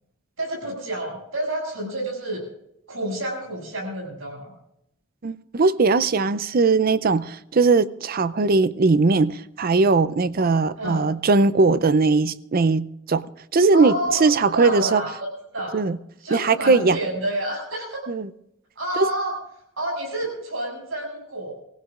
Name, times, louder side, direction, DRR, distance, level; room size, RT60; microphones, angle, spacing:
voice 1, 0.4-2.4 2.9-4.5 10.8-11.0 13.7-15.8 16.2-18.0 18.8-19.4 19.8-21.5, right 1 dB, 85° right, 7.1 m, -29 dB
voice 2, 5.2-13.2 13.5-13.9 14.2-15.0 15.7-16.0 16.3-17.0 18.1-18.3 19.0-19.1, right 3 dB, 45° right, 0.5 m, -19 dB
24.0 x 16.0 x 2.5 m
head